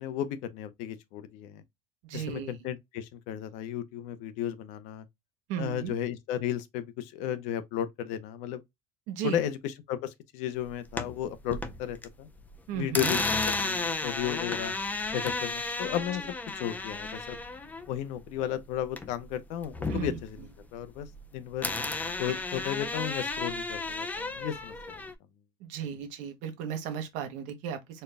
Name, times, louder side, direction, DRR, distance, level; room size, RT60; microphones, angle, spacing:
voice 1, 0.0-1.6 2.1-5.1 5.6-8.6 9.2-12.3 12.7-14.7 15.1-16.3 16.5-17.4 17.9-21.7 22.2-25.0, left 10 dB, 75° left, 0.7 m, -34 dB
voice 2, 2.0-2.7 5.5-5.9 9.1-9.4 12.7-13.2 19.9-20.5 22.3-22.4 25.6-28.0, right 8 dB, 75° right, 1.1 m, -36 dB
sound 1, 10.7-12.1 12.4-19.3 19.6-21.3 21.6-25.1, left 3 dB, 10° left, 0.5 m, -33 dB
4.4 x 2.2 x 3.3 m
cardioid pair, 155°, 13 cm